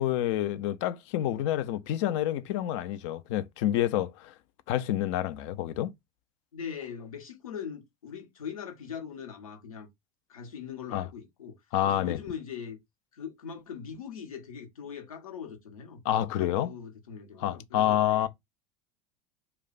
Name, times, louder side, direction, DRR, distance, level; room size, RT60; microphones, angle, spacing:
voice 1, 0.0-4.3 4.7-5.9 10.9-11.1 11.7-12.2 16.0-16.7 17.4-18.3, left 12 dB, 60° left, 0.5 m, -28 dB
voice 2, 6.5-9.9 10.3-11.6 11.8-12.8 13.1-16.0 16.3-18.3, left 7 dB, 85° left, 1.0 m, -41 dB
2.4 x 2.2 x 3.9 m
hypercardioid pair, 75°, 18 cm